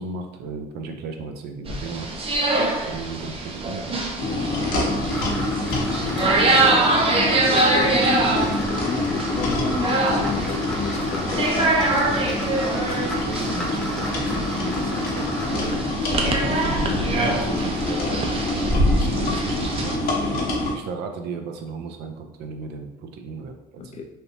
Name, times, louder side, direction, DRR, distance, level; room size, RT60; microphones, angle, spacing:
voice 1, 0.0-2.4 2.9-3.9 4.8-5.4 5.8-6.6 13.0-15.9 16.4-16.9 17.3-18.2 18.5-20.4 20.7-24.0, right 4 dB, 75° right, 5 dB, 0.5 m, -35 dB
sound 1, 1.7-20.0, right 2 dB, 35° right, 0.6 m, -24 dB
sound 2, 4.2-20.7, left 2 dB, 65° left, 0.9 m, -26 dB
sound 3, 4.8-15.9, equal, 5° left, 0.8 m, -34 dB
voice 2, 6.4-6.8 7.3-12.3 18.0-18.3 23.8-24.1, left 4 dB, 40° left, 4 dB, 0.5 m, -32 dB
3.3 x 2.7 x 2.8 m, 0.98 s
cardioid pair, 110°, 17 cm